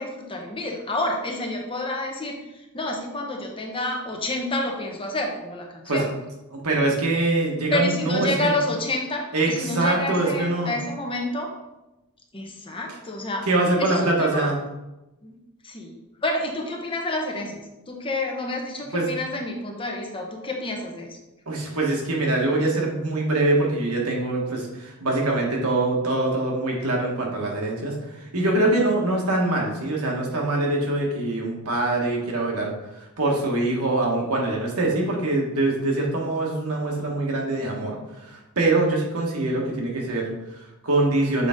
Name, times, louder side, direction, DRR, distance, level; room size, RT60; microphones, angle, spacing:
voice 1, 0.0-2.4 2.7-6.1 7.7-11.5 12.3-13.5 13.8-14.5 15.2-15.3 15.6-17.6 17.9-21.2, left 1 dB, 25° left, 1 dB, 0.9 m, -29 dB
voice 2, 6.5-8.5 9.3-10.8 13.5-14.6 18.9-19.1 21.5-38.0 38.2-41.5, right 2 dB, 75° right, -1 dB, 1.4 m, -24 dB
6.8 x 4.0 x 3.7 m, 0.98 s
head